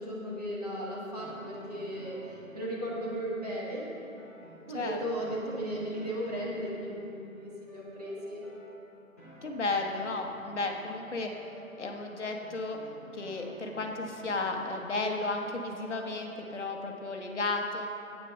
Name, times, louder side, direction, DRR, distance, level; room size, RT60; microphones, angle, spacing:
voice 1, 0.0-3.8 4.7-8.4, equal, 30° right, -5 dB, 1.4 m, -36 dB
sound 1, 1.2-17.1, right 1 dB, 10° left, 0.9 m, -53 dB
voice 2, 4.7-5.3 9.4-11.3 11.8-12.8 13.1-17.9, left 3 dB, 55° left, 2 dB, 1.2 m, -33 dB
8.4 x 6.7 x 6.4 m, 2.7 s
figure-of-eight pair, 155°, 42 cm